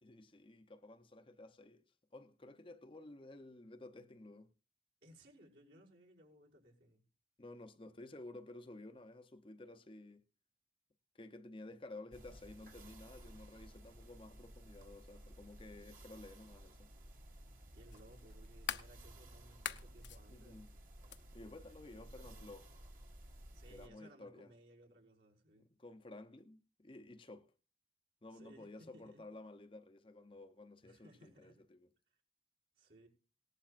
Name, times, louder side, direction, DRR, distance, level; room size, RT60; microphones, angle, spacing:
voice 1, 0.0-1.8 2.1-4.5 7.4-10.2 11.1-16.9 20.3-20.7 21.3-22.7 23.7-24.5 25.8-27.5 28.2-31.9, left 2 dB, 30° left, 0.7 m, -53 dB
voice 2, 5.0-7.0 17.7-20.7 21.9-22.5 23.5-25.7 28.3-29.2 30.8-31.6 32.8-33.1, right 1 dB, 65° right, 5.5 m, -62 dB
sound 1, 12.1-23.9, right 1 dB, 50° right, 2.1 m, -56 dB
sound 2, 16.0-16.1 17.9-18.9 19.5-20.2 21.1-21.2, left 8 dB, 75° left, 0.9 m, -42 dB
18.5 x 11.5 x 2.5 m
head